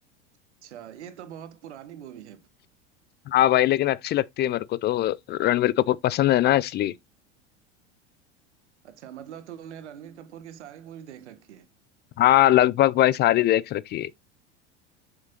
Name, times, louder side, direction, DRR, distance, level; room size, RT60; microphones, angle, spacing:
voice 1, 0.6-2.4 8.8-11.7, right 9 dB, 75° right, 1.3 m, -43 dB
voice 2, 3.3-6.9 12.2-14.1, left 14 dB, 30° left, 0.4 m, -21 dB
7.4 x 6.5 x 2.5 m
hypercardioid pair, 80°, 35 cm